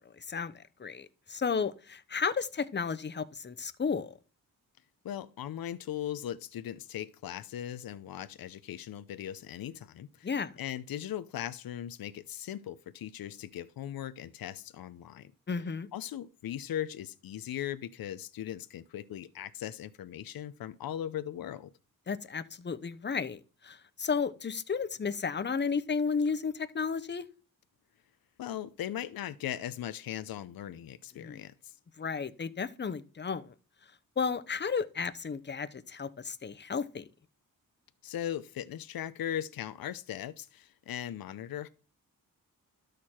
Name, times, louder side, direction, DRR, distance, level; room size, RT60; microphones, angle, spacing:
voice 1, 0.8-4.2 10.2-10.5 15.5-15.9 22.1-27.3 31.2-31.4 32.0-33.5 34.2-37.0, left 5 dB, 30° left, 0.8 m, -33 dB
voice 2, 5.0-10.3 10.6-15.6 15.9-21.7 28.4-31.7 38.0-41.7, left 11 dB, 75° left, 0.7 m, -39 dB
12.5 x 6.7 x 4.4 m
cardioid pair, 85°, 36 cm